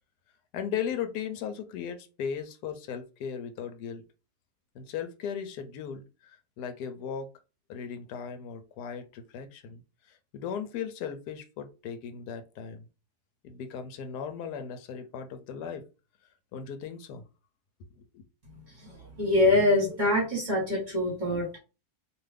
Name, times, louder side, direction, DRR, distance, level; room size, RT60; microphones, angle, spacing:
voice 1, 0.5-4.0 4.7-7.3 7.7-9.8 10.1-12.9 13.4-15.8 16.5-17.2 17.9-18.2, left 7 dB, 85° left, 1.1 m, -37 dB
voice 2, 18.8-21.6, left 1 dB, 35° right, 1.1 m, -25 dB
2.6 x 2.5 x 3.2 m
omnidirectional pair, 1.7 m